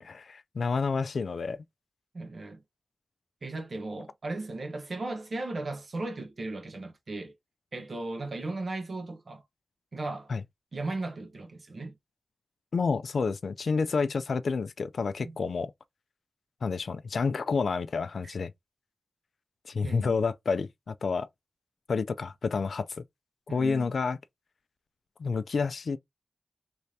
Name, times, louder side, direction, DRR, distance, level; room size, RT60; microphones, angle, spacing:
voice 1, 0.0-1.6 10.3-10.4 12.7-15.7 16.6-18.5 19.6-21.3 21.9-23.0 23.5-24.2 25.2-26.0, left 4 dB, 85° left, 0.3 m, -29 dB
voice 2, 2.1-2.6 3.4-7.3 7.7-9.4 9.9-10.3 10.7-12.0 15.2-15.3 19.8-20.2 23.5-23.9, right 2 dB, 60° right, 1.0 m, -36 dB
3.3 x 2.7 x 3.2 m
wide cardioid pair, 100°, 0 cm